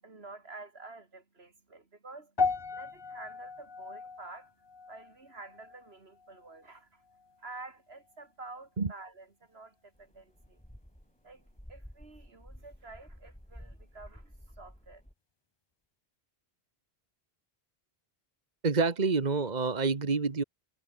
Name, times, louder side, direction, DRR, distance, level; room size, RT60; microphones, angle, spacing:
voice 1, 0.0-2.3 2.7-4.5 4.9-7.0 7.4-10.6 11.2-15.0, right 3 dB, 80° right, 3.1 m, -49 dB
sound 1, 2.4-6.8 7.0-7.4 8.1-8.2, left 4 dB, 30° left, 0.7 m, -36 dB
sound 2, 10.0-15.1, equal, 5° left, 4.1 m, -52 dB
voice 2, 18.6-20.4, right 4 dB, 45° right, 1.4 m, -27 dB
omnidirectional pair, 1.0 m